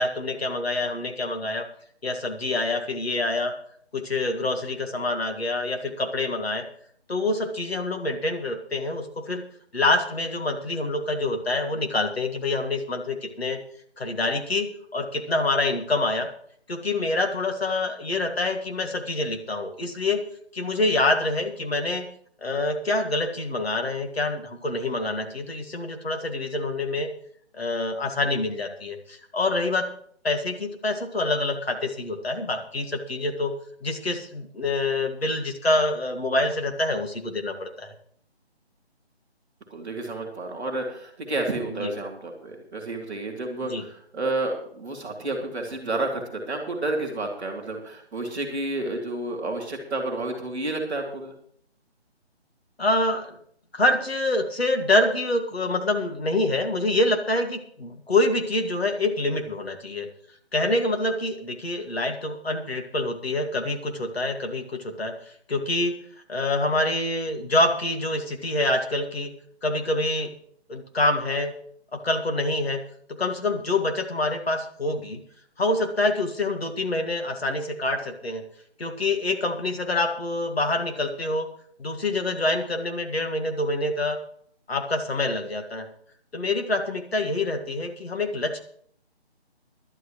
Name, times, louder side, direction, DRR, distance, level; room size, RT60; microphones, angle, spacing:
voice 1, 0.0-1.7 2.0-3.5 3.9-6.6 7.1-9.4 9.7-13.6 14.0-16.3 16.7-20.2 20.5-22.1 22.4-27.1 27.5-29.9 30.2-33.5 33.8-38.0 41.8-41.9 43.6-43.8 52.8-53.4 53.7-60.1 60.5-65.1 65.5-66.0 66.3-69.3 69.6-70.3 70.7-71.5 71.9-72.8 73.2-75.2 75.6-78.4 78.8-81.5 81.8-84.2 84.7-85.9 86.3-88.6, left 2 dB, 65° left, 4 dB, 2.1 m, -26 dB
voice 2, 39.7-51.3, right 2 dB, 5° right, -10 dB, 1.1 m, -30 dB
18.5 x 11.5 x 3.1 m, 0.63 s
figure-of-eight pair, 155°, 33 cm